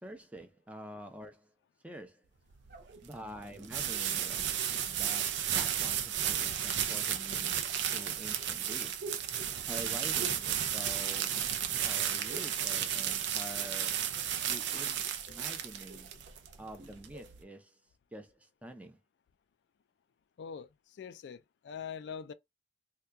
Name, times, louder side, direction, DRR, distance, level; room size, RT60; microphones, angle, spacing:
voice 1, 0.0-1.5 1.8-2.3 3.0-4.5 4.8-7.6 7.9-9.0 9.7-11.5 11.8-14.0 14.5-15.0 15.3-16.1 16.6-17.8 18.1-19.0, right 1 dB, 10° right, 0.6 m, -47 dB
sound 1, 2.5-17.4, right 9 dB, 80° right, 0.5 m, -33 dB
sound 2, 2.7-4.9 5.6-6.4 7.5-11.5 11.8-12.6 12.9-13.8 14.2-17.4, right 2 dB, 55° right, 0.9 m, -51 dB
voice 2, 20.4-22.3, left 6 dB, 70° left, 0.3 m, -43 dB
2.8 x 2.3 x 3.4 m
head